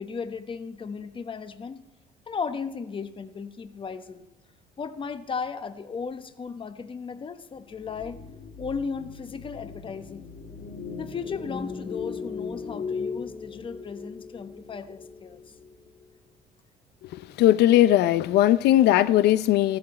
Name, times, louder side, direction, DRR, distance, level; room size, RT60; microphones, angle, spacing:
voice 1, 0.0-1.8 2.3-4.3 4.8-8.2 8.6-10.3 11.0-15.4, left 5 dB, 30° left, 1.0 m, -35 dB
sound 1, 7.7-16.0, left 5 dB, 55° left, 2.1 m, -38 dB
voice 2, 17.0-19.8, left 13 dB, 80° left, 0.6 m, -19 dB
14.5 x 12.0 x 4.2 m
cardioid pair, 110°, 17 cm